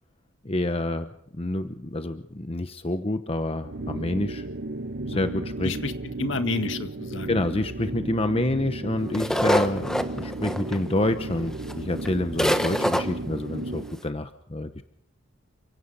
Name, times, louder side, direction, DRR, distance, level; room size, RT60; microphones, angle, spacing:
voice 1, 0.4-1.1 1.3-4.4 5.1-5.7 7.3-14.8, left 1 dB, 30° left, 9 dB, 1.0 m, -28 dB
sound 1, 3.6-14.0, right 2 dB, 55° right, 0.9 m, -34 dB
voice 2, 6.2-7.4 8.5-8.6, left 2 dB, 65° left, 8 dB, 1.8 m, -30 dB
sound 2, 9.1-11.1 11.7-11.8 12.0-12.1 12.4-13.0, equal, 5° left, 1.2 m, -24 dB
29.5 x 16.5 x 5.6 m, 0.69 s
head